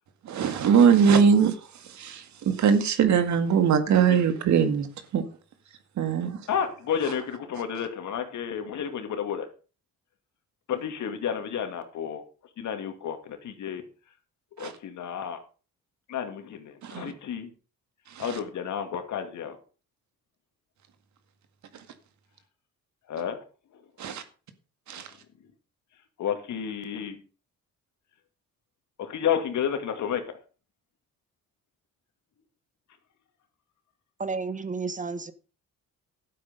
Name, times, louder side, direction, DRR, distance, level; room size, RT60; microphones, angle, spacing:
voice 1, 0.3-1.5 1.9-4.9 5.1-5.2 6.0-6.4 14.6-14.7 16.8-17.1 18.2-18.4 24.0-24.2 24.9-25.1, right 7 dB, 70° right, 9 dB, 2.0 m, -21 dB
voice 2, 6.5-9.5 10.7-12.2 12.6-13.8 14.6-15.4 16.1-17.5 18.2-19.6 23.1-23.4 26.2-27.2 29.0-30.2, left 8 dB, 70° left, 7 dB, 2.5 m, -31 dB
voice 3, 34.2-35.3, right 4 dB, 25° right, 13 dB, 1.4 m, -31 dB
12.0 x 8.5 x 5.3 m, 0.36 s
cardioid pair, 90°, 30 cm